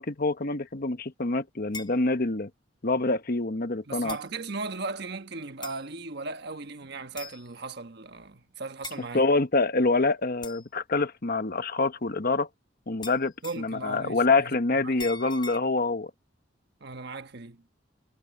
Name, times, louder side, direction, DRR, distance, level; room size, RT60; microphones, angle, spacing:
voice 1, 0.0-2.5 2.8-4.2 9.1-12.5 12.9-16.1, left 3 dB, 50° left, 1.2 m, -26 dB
sound 1, 1.7-2.0 3.1-3.2 4.1-4.3 5.6-5.9 7.2-7.5 8.8-9.0 10.4-10.7 13.0-13.7 15.0-15.6, left 4 dB, 25° left, 1.1 m, -41 dB
voice 2, 3.9-9.3 13.4-15.0 16.8-17.6, right 3 dB, 60° right, 1.4 m, -37 dB
head